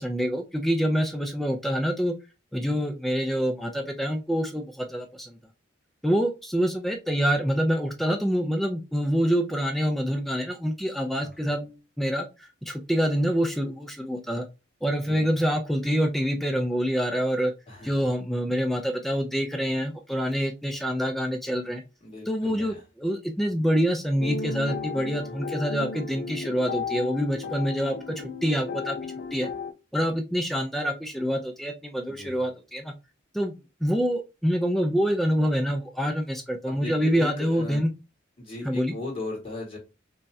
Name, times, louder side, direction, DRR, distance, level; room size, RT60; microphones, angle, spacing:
voice 1, 0.0-2.1 2.5-5.4 6.0-14.4 14.8-17.5 17.8-21.8 22.3-29.0 29.3-29.5 29.9-32.9 33.3-33.6 33.8-37.9 38.6-39.0, equal, ahead, 4 dB, 0.4 m, -26 dB
voice 2, 11.1-11.5 15.1-15.3 17.7-18.0 22.0-22.8 32.1-32.4 36.7-37.8 38.4-39.8, left 2 dB, 30° left, -4 dB, 1.9 m, -38 dB
sound 1, 24.2-29.7, left 5 dB, 55° left, 0.5 m, -34 dB
5.3 x 2.2 x 2.7 m, 0.28 s
head